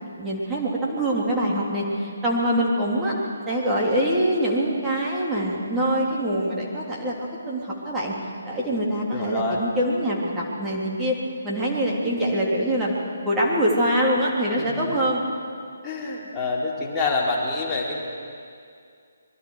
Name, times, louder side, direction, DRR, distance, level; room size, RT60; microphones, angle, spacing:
voice 1, 0.2-3.1 3.5-7.1 7.5-8.1 8.4-11.2 11.4-12.9 13.2-15.3, equal, 10° right, -5 dB, 3.6 m, -24 dB
voice 2, 9.1-9.6 14.6-14.8 15.8-18.0, left 3 dB, 10° left, -6 dB, 3.9 m, -27 dB
26.5 x 22.0 x 5.0 m, 2.3 s
figure-of-eight pair, 140°, 0 cm